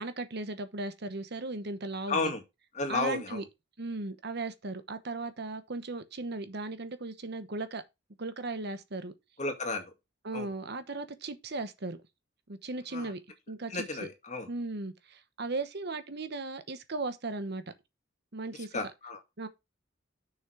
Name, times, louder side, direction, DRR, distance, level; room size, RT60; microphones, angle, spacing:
voice 1, 0.0-2.3 2.9-3.4 3.8-7.8 8.2-9.1 10.2-12.0 12.5-13.2 13.5-14.1 14.5-17.6 18.3-18.8 19.4-19.5, right 2 dB, 55° right, 1.0 m, -37 dB
voice 2, 2.1-2.4 2.7-3.4 9.4-9.9 10.3-10.5 12.9-13.1 13.7-14.5 18.7-19.2, left 3 dB, 40° left, 2.1 m, -32 dB
6.9 x 6.3 x 4.7 m
head